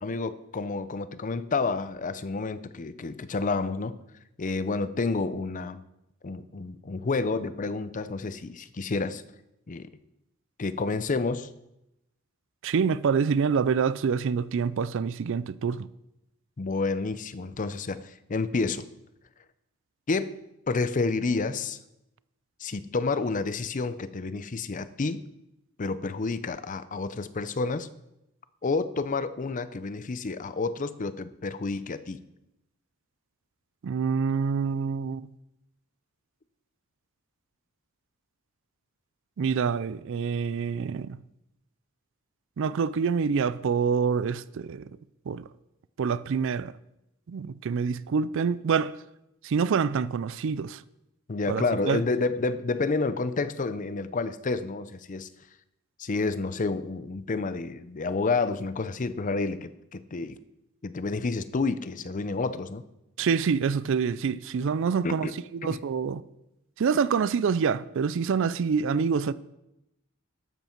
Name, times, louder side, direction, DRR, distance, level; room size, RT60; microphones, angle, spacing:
voice 1, 0.0-4.0 4.4-5.8 6.2-9.2 9.7-9.9 10.6-11.5 16.6-18.9 20.1-20.4 20.7-21.8 22.6-25.2 25.8-27.9 28.6-32.2 51.3-55.3 56.0-60.4 60.8-62.8 65.0-65.3 65.7-65.8, left 3 dB, 35° left, 0.5 m, -29 dB
voice 2, 12.6-15.9 33.8-35.3 39.4-41.2 42.6-44.9 45.3-45.4 46.0-46.8 47.3-49.0 49.4-50.8 51.5-52.0 63.2-66.2 66.8-69.3, right 6 dB, 60° right, 0.4 m, -26 dB
12.5 x 8.0 x 4.5 m
head